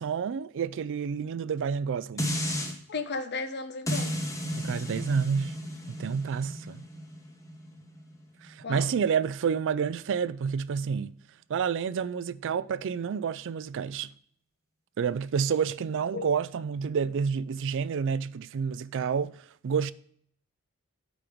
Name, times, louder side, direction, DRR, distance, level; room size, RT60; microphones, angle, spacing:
voice 1, 0.0-2.4 4.6-5.6 5.9-6.8 8.4-11.1 11.5-14.1 15.0-19.9, right 6 dB, 55° right, 0.3 m, -29 dB
sound 1, 2.2-2.7 3.9-9.0 9.5-9.6, equal, 15° left, 1.2 m, -34 dB
voice 2, 2.9-4.2 8.6-8.9 16.1-16.3, left 4 dB, 50° left, 0.8 m, -34 dB
8.9 x 4.5 x 5.0 m
head